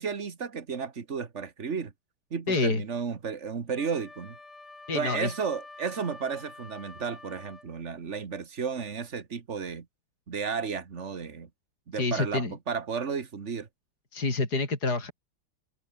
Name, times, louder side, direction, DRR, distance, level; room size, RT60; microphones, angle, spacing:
voice 1, 0.0-1.9 2.3-4.4 4.9-9.9 10.3-11.5 11.9-13.7, right 6 dB, 35° right, 1.8 m, -33 dB
voice 2, 2.5-2.8 4.9-5.3 11.9-12.5 14.1-15.1, left 3 dB, 45° left, 5.3 m, -27 dB
Wind instrument woodwind instrument, 3.7-7.7, left 3 dB, 85° left, 7.9 m, -48 dB
omnidirectional pair, 2.3 m